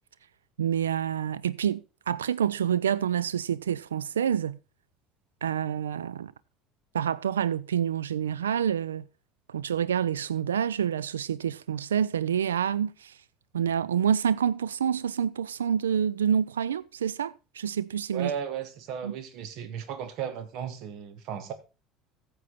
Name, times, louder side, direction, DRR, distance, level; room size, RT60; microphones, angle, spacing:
voice 1, 0.6-4.6 5.4-6.3 6.9-9.0 9.5-13.1 13.5-18.3 19.0-19.1, right 8 dB, 85° right, 0.4 m, -27 dB
voice 2, 18.1-21.5, right 8 dB, 60° right, 1.4 m, -35 dB
14.0 x 7.1 x 4.1 m
hypercardioid pair, 70°, 0 cm